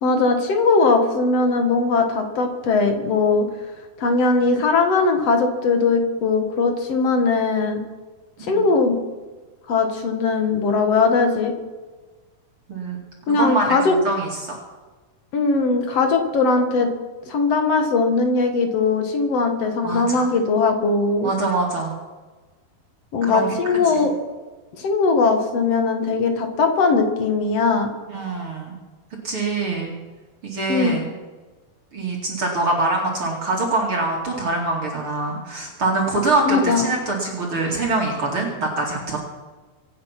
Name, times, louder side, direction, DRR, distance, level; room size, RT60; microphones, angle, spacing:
voice 1, 0.0-3.5 4.0-7.8 8.4-9.0 9.7-11.5 13.3-13.9 15.3-16.9 17.3-21.3 23.1-24.1 24.8-27.9 30.7-31.0 36.5-36.9, left 4 dB, 55° left, 5 dB, 2.2 m, -19 dB
voice 2, 13.3-14.6 19.8-20.3 21.2-21.9 23.2-23.9 28.1-28.8 29.2-29.9 30.4-31.1 31.9-39.2, right 2 dB, 40° right, -1 dB, 2.8 m, -24 dB
24.5 x 8.9 x 5.9 m, 1.3 s
omnidirectional pair, 4.2 m